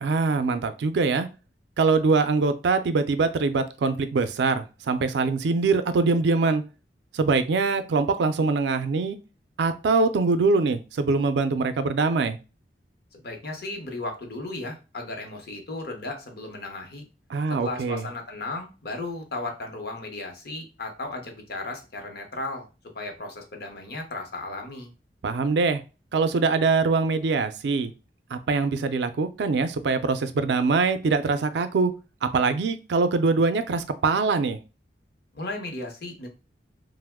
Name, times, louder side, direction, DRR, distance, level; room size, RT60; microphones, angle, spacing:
voice 1, 0.0-1.3 1.8-6.6 7.1-9.2 9.6-12.4 17.3-18.1 25.2-25.8 26.1-27.9 28.3-31.9 32.2-34.6, right 4 dB, 75° right, 11 dB, 0.4 m, -23 dB
voice 2, 13.1-17.1 17.5-22.7 22.9-24.9 35.3-36.3, left 2 dB, 60° left, 3 dB, 0.8 m, -35 dB
2.9 x 2.0 x 3.4 m, 0.30 s
head